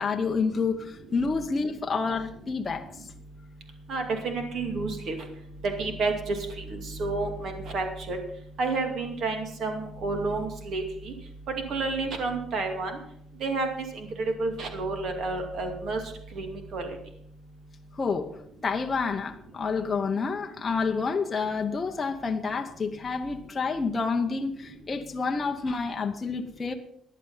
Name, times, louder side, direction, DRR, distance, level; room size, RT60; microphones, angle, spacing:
voice 1, 0.0-2.9 18.0-18.3 18.6-26.7, left 4 dB, 20° left, 3 dB, 0.9 m, -29 dB
voice 2, 3.9-5.2 5.6-6.4 6.7-8.2 8.6-11.1 11.7-12.9 13.4-13.7 13.9-14.1 14.4-16.0 16.3-16.9, right 3 dB, 55° right, 5 dB, 2.5 m, -30 dB
15.0 x 10.5 x 5.7 m, 0.70 s
cardioid pair, 170°, 0 cm